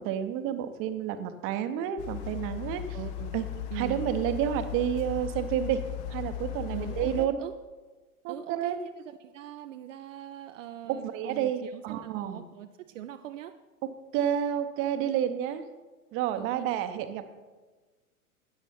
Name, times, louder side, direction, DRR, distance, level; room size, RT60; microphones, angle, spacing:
voice 1, 0.0-2.8 3.3-3.5 3.7-5.8 6.1-7.4 8.2-8.8 10.9-12.4 14.1-15.7 16.1-17.3, right 10 dB, 30° right, 10 dB, 0.8 m, -30 dB
sound 1, 2.0-7.3, left 11 dB, 30° left, 0.6 m, -37 dB
voice 2, 2.9-3.4 3.7-4.1 6.7-7.5 8.3-13.6 16.3-16.8, right 12 dB, 60° right, 8 dB, 0.6 m, -42 dB
13.0 x 8.9 x 4.3 m, 1.3 s
figure-of-eight pair, 95°, 44 cm